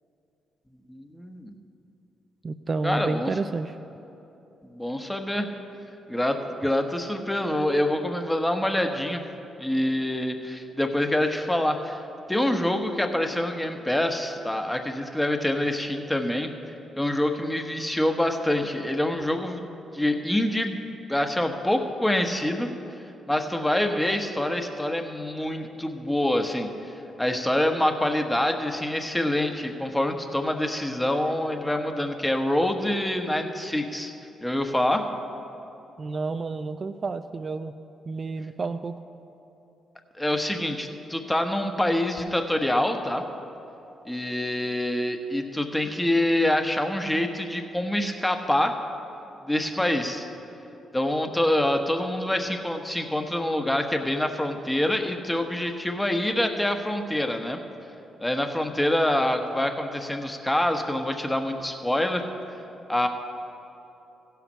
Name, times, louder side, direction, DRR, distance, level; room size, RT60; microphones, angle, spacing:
voice 1, 0.9-1.5 2.8-3.3 4.6-5.5 6.1-9.2 9.6-16.5 17.0-19.7 19.9-20.8 21.1-22.7 23.3-26.9 27.2-34.1 34.4-35.1 40.2-43.2 44.1-48.8 49.5-50.3 50.9-57.6 58.2-62.2 62.9-63.1, left 1 dB, 10° left, 5 dB, 1.1 m, -26 dB
voice 2, 2.4-3.8 36.0-37.7 38.1-39.0, right 3 dB, 45° right, 10 dB, 0.3 m, -30 dB
16.0 x 5.8 x 5.5 m, 2.9 s
hypercardioid pair, 45°, 0 cm